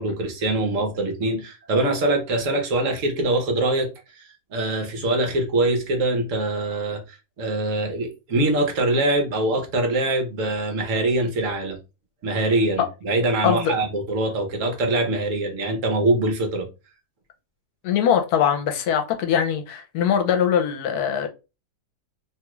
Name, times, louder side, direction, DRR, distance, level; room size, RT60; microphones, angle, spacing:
voice 1, 0.0-11.8 12.2-16.7, right 2 dB, 60° right, 1.1 m, -23 dB
voice 2, 13.4-13.8 17.8-21.3, left 8 dB, 75° left, 1.1 m, -22 dB
2.9 x 2.3 x 3.0 m
omnidirectional pair, 1.7 m